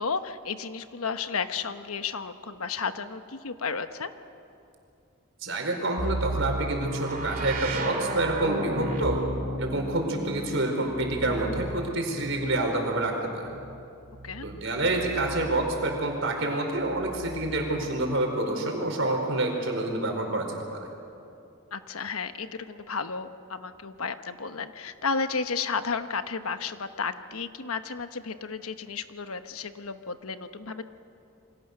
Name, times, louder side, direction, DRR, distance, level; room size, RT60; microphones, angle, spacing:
voice 1, 0.0-4.1 11.2-11.4 14.2-14.5 21.7-30.8, left 5 dB, 85° left, 9 dB, 1.1 m, -33 dB
voice 2, 5.4-9.2 9.6-13.5 14.4-20.9, right 2 dB, 60° right, 2 dB, 4.7 m, -28 dB
sound 1, 6.0-15.8 16.8-17.8, right 1 dB, 40° right, 2.6 m, -35 dB
28.5 x 24.5 x 6.7 m, 2.6 s
head